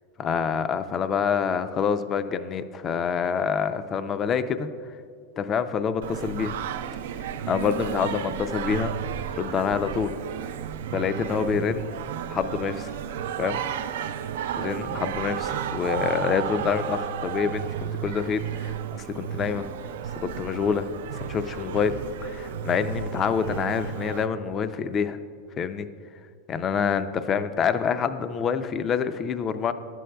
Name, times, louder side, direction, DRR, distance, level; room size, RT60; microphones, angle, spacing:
voice 1, 0.2-4.7 5.4-6.5 7.5-8.9 9.3-10.1 10.9-11.9 12.3-12.9 13.4-13.6 14.6-19.7 20.2-20.9 21.2-22.0 22.2-25.2 25.6-25.9 26.5-29.7, left 6 dB, 25° left, 11 dB, 0.3 m, -26 dB
Singing, 6.0-24.3, right 9 dB, 75° right, 0.3 m, -33 dB
11.0 x 7.6 x 2.2 m, 2.3 s
supercardioid pair, 140°, 0 cm